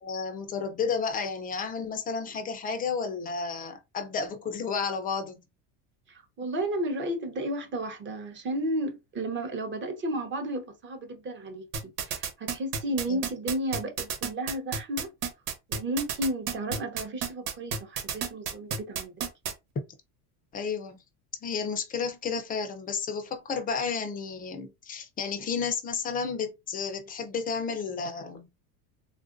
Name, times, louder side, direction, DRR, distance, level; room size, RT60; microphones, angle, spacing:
voice 1, 0.0-5.4 13.1-13.2 20.5-21.0 21.4-28.6, left 5 dB, 20° left, 0.5 m, -32 dB
voice 2, 6.1-15.1 15.7-19.1, right 1 dB, 25° right, 0.8 m, -33 dB
sound 1, 11.7-19.5, right 6 dB, 85° right, 1.2 m, -30 dB
3.6 x 2.4 x 2.5 m
supercardioid pair, 135°, 47 cm